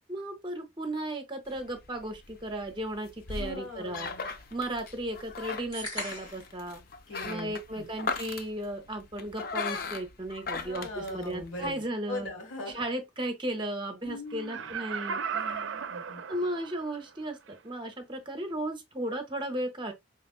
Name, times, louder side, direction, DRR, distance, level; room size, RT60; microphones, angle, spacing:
voice 1, 0.1-4.1 4.5-6.8 7.2-12.3 12.7-15.2 16.3-19.9, right 1 dB, 25° right, 0.7 m, -35 dB
sound 1, 1.5-11.7, left 4 dB, 45° left, 0.5 m, -39 dB
voice 2, 3.3-4.3 7.1-7.9 10.5-12.8 14.0-14.9 15.3-16.2, left 2 dB, 80° left, 1.9 m, -41 dB
sound 2, 5.7-6.5, left 1 dB, 20° left, 1.7 m, -38 dB
Laughter, 14.3-17.0 17.5-17.6, right 6 dB, 70° right, 0.4 m, -36 dB
4.9 x 3.0 x 2.4 m
head